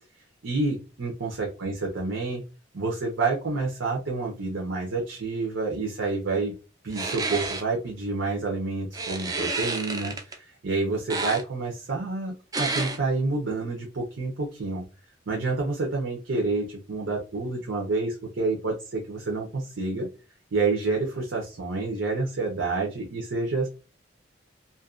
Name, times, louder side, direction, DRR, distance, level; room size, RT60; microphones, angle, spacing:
voice 1, 0.4-2.4 2.7-6.5 6.8-14.8 15.3-20.1 20.5-23.7, right 3 dB, 85° right, -1 dB, 0.6 m, -28 dB
sound 1, 6.9-7.6 8.9-10.3 11.1-11.4 12.5-13.0, right 3 dB, 20° right, 0.3 m, -30 dB
2.5 x 2.2 x 2.4 m, 0.33 s
head